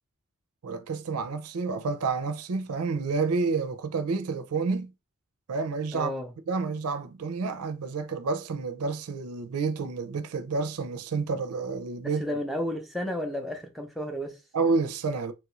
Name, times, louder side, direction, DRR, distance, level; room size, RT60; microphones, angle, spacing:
voice 1, 0.6-4.9 5.5-6.1 6.5-12.3 14.5-15.3, right 4 dB, 80° right, 0.5 m, -29 dB
voice 2, 5.9-6.3 12.2-14.4, equal, ahead, 0.5 m, -32 dB
3.0 x 2.4 x 3.0 m
head